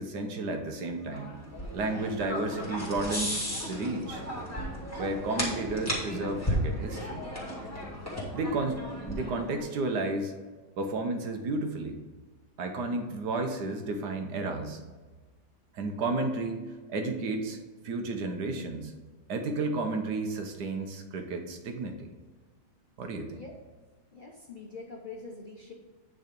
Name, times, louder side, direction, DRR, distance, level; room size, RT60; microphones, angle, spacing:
voice 1, 0.0-1.4 1.7-4.2 5.0-7.2 8.3-10.3 10.8-12.0 12.6-14.8 15.7-17.6 17.8-18.9 19.3-22.1 23.0-23.4, right 2 dB, 75° right, 5 dB, 1.5 m, -32 dB
sound 1, 1.1-9.7, equal, 10° left, 2.1 m, -35 dB
voice 2, 24.1-25.7, left 4 dB, 40° left, 0 dB, 0.7 m, -44 dB
9.1 x 4.0 x 5.2 m, 1.4 s
omnidirectional pair, 1.8 m